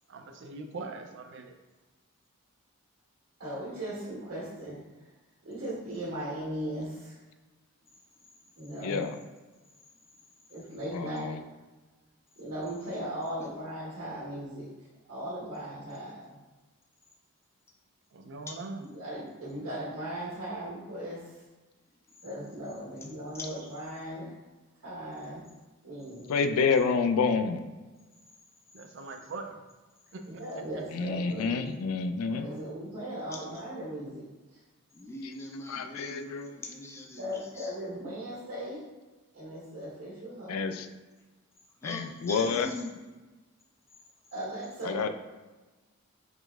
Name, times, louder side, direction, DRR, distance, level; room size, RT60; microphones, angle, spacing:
voice 1, 0.1-1.5 18.1-18.8 28.7-29.6 30.1-30.2 30.7-30.8, right 3 dB, 55° right, 5 dB, 0.4 m, -41 dB
voice 2, 3.4-4.8 5.4-7.2 8.6-9.1 10.5-11.5 12.4-14.7 15.0-16.4 18.9-21.4 22.2-24.3 24.8-25.4 25.8-26.4 30.3-31.7 32.3-34.2 34.5-34.6 37.2-38.8 39.3-40.8 44.3-45.1, right 1 dB, 80° right, -8 dB, 1.3 m, -38 dB
voice 3, 8.8-9.2 10.9-11.4 26.3-27.7 30.9-32.5 35.7-36.5 40.5-40.9 41.8-42.7 44.8-45.1, left 5 dB, 85° left, 8 dB, 0.3 m, -28 dB
voice 4, 21.9-22.2 22.9-23.1 23.3-23.5 26.2-26.4 33.3-33.4 34.9-37.8 40.4-40.6 41.8-43.1, left 2 dB, 10° left, 0 dB, 0.4 m, -42 dB
4.9 x 3.0 x 2.3 m, 1.2 s
head